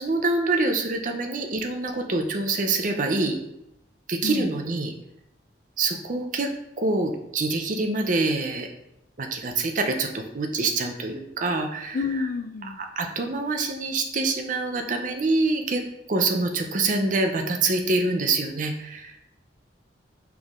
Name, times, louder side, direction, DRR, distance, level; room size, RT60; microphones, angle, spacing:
voice 1, 0.0-3.4 4.1-4.9 5.8-6.5 6.8-8.7 9.2-12.2 12.6-15.8 16.1-19.1, right 3 dB, 45° right, 4 dB, 0.5 m, -25 dB
voice 2, 11.9-12.8, left 4 dB, 45° left, 8 dB, 0.3 m, -29 dB
6.1 x 3.4 x 2.4 m, 0.85 s
head